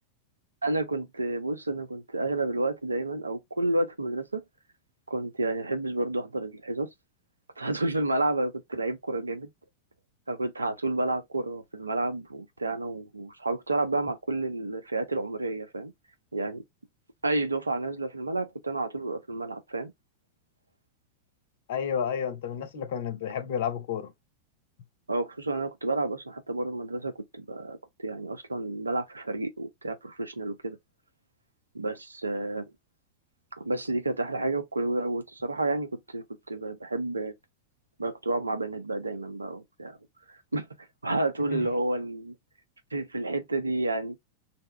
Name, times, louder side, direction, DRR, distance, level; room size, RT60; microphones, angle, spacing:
voice 1, 0.6-4.4 5.1-6.9 7.6-9.5 10.3-15.9 16.3-16.6 17.2-19.9 25.1-30.8 31.7-32.7 33.6-37.3 38.0-40.0 40.5-40.7 41.0-42.3 42.9-44.2, right 2 dB, 80° right, 0.5 m, -30 dB
voice 2, 21.7-24.1 41.5-41.6, left 8 dB, 55° left, 0.6 m, -31 dB
2.7 x 2.1 x 3.3 m
figure-of-eight pair, 90°, 0 cm